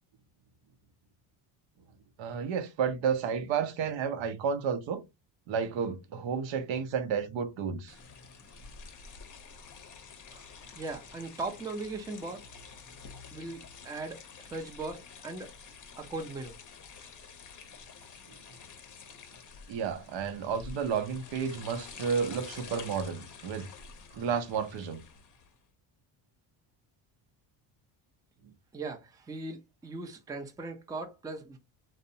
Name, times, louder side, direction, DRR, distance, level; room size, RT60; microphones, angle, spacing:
voice 1, 2.2-5.0 5.5-8.0 19.7-23.7 24.1-25.0, right 6 dB, 65° right, 0.6 m, -31 dB
sound 1, 7.9-25.6, left 5 dB, 40° left, 0.6 m, -49 dB
voice 2, 10.8-12.4 13.3-15.5 16.0-16.6 16.9-17.1 28.7-31.6, right 3 dB, 10° right, 0.4 m, -39 dB
2.6 x 2.1 x 2.6 m
cardioid pair, 90°, 50 cm